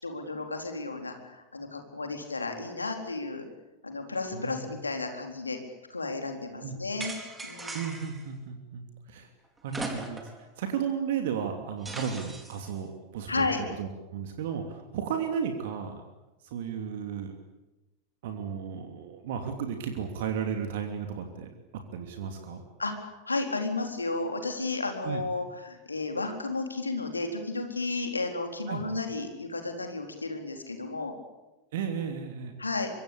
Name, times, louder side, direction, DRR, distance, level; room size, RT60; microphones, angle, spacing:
voice 1, 0.0-3.5 3.8-5.6 5.9-7.1 7.4-7.9 13.3-13.6 22.8-31.1 32.6-32.9, left 3 dB, 80° left, 4 dB, 4.1 m, -33 dB
voice 2, 4.3-4.7 6.6-6.8 7.7-9.3 9.6-10.2 10.6-13.5 13.8-15.9 16.4-17.3 18.2-21.5 21.9-22.6 25.0-25.2 28.7-28.8 31.7-32.6, right 7 dB, 55° right, 5 dB, 2.8 m, -34 dB
sound 1, 7.0-8.2 9.7-10.4 10.8-10.9 11.8-12.7, right 2 dB, 10° right, 4.3 m, -38 dB
24.5 x 24.0 x 8.6 m, 1.0 s
figure-of-eight pair, 90°, 0 cm